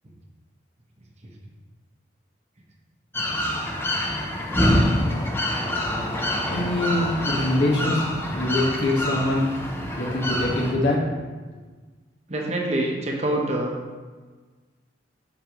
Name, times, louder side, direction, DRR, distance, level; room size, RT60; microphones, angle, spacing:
sound 1, 3.1-10.7, left 1 dB, 10° left, 0.7 m, -26 dB
voice 1, 6.5-8.0 8.3-9.5 10.0-11.2, left 1 dB, 65° left, -2 dB, 1.5 m, -24 dB
voice 2, 12.3-13.8, right 1 dB, 35° right, -1 dB, 1.0 m, -25 dB
8.4 x 6.3 x 3.0 m, 1.4 s
head